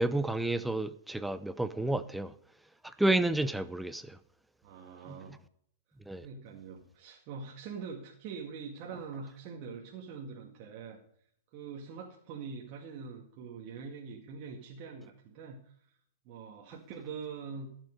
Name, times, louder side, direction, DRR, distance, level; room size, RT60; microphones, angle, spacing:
voice 1, 0.0-2.3 2.8-4.2 5.1-5.2 6.1-6.3, right 2 dB, 5° right, 0.6 m, -30 dB
voice 2, 4.6-5.4 6.1-11.0 11.5-15.7 16.3-17.8, right 5 dB, 45° right, 2.0 m, -44 dB
14.0 x 7.5 x 5.3 m
figure-of-eight pair, 105°, 0 cm